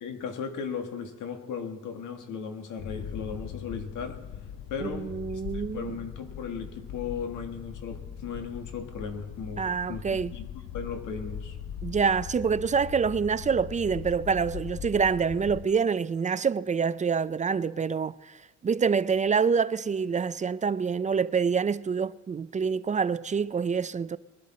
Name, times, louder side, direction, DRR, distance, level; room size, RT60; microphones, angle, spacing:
voice 1, 0.0-4.2 4.7-10.5 10.7-11.6, left 6 dB, 85° left, 1.7 m, -37 dB
sound 1, 2.8-15.7, left 8 dB, 70° left, 0.9 m, -40 dB
voice 2, 4.8-5.9 9.6-10.3 11.8-24.2, right 6 dB, 25° right, 0.4 m, -26 dB
21.0 x 11.5 x 4.3 m
cardioid pair, 90°, 30 cm